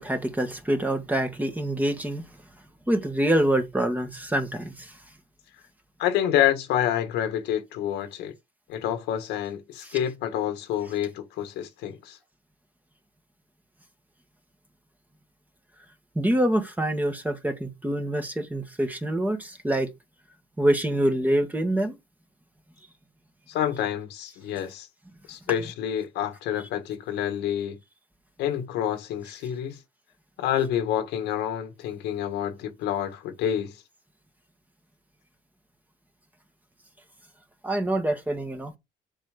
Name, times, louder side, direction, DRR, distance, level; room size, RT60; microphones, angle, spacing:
voice 1, 0.0-2.2 2.9-4.9 9.8-10.0 16.1-19.9 20.6-22.0 37.6-38.7, right 1 dB, 10° right, 1.7 m, -25 dB
voice 2, 6.0-8.3 8.7-12.2 23.5-24.9 25.3-27.8 28.4-29.8 30.4-33.8, left 10 dB, 85° left, 1.8 m, -28 dB
7.3 x 5.5 x 5.2 m
cardioid pair, 110°, 17 cm